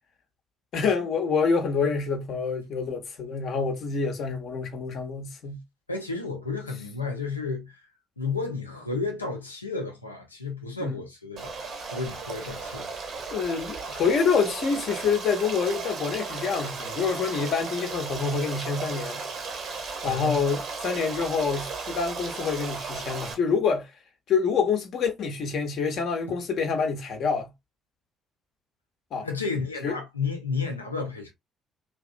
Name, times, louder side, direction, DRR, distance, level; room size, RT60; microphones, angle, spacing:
voice 1, 0.7-5.6 10.8-10.9 13.3-19.2 20.0-23.9 24.3-27.5 29.1-29.3 29.8-30.0, left 5 dB, 55° left, 0.7 m, -27 dB
voice 2, 5.9-7.8 8.2-11.5 11.9-12.9 20.0-20.4 29.2-31.3, left 4 dB, 90° left, 0.5 m, -32 dB
Stream, 11.4-23.3, right 4 dB, 55° right, 0.8 m, -35 dB
2.7 x 2.3 x 2.4 m
figure-of-eight pair, 45°, 0 cm